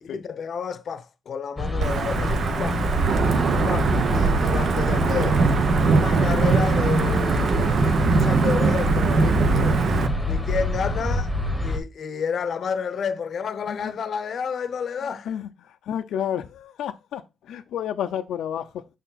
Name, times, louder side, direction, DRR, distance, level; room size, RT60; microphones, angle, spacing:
voice 1, 0.0-2.8 3.6-5.4 5.9-9.8 10.3-11.3 11.6-15.3, left 6 dB, 50° left, 0.7 m, -30 dB
sound 1, 1.6-11.8, left 2 dB, ahead, 1.4 m, -26 dB
Wind / Thunder / Rain, 1.8-10.1, right 5 dB, 55° right, 0.7 m, -21 dB
voice 2, 15.0-18.9, left 9 dB, 90° left, 0.5 m, -31 dB
6.6 x 4.5 x 4.0 m
wide cardioid pair, 160°, 0 cm